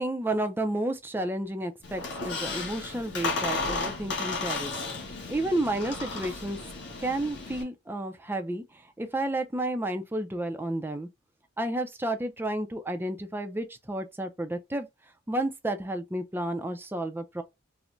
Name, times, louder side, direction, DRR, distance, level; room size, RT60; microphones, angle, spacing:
voice 1, 0.0-4.7 5.0-6.7 7.0-11.1 11.6-14.9 15.3-17.4, right 1 dB, 10° right, 0.4 m, -31 dB
Squeak, 1.8-7.6, left 3 dB, 60° left, 1.3 m, -34 dB
4.3 x 2.1 x 2.5 m
head